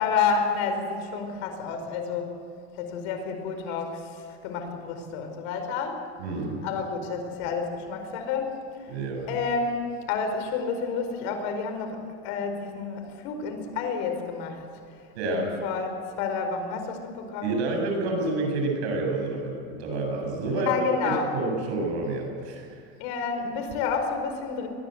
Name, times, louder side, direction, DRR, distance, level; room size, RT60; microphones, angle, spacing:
voice 1, 0.0-2.4 2.7-6.0 6.6-8.9 9.3-14.6 14.9-17.6 20.4-21.3 23.0-24.7, left 5 dB, 75° left, 6 dB, 5.0 m, -30 dB
voice 2, 6.2-6.6 8.9-9.3 15.1-15.5 17.4-22.9, right 2 dB, 85° right, 2 dB, 7.9 m, -29 dB
22.0 x 20.5 x 8.0 m, 2.5 s
supercardioid pair, 115°, 33 cm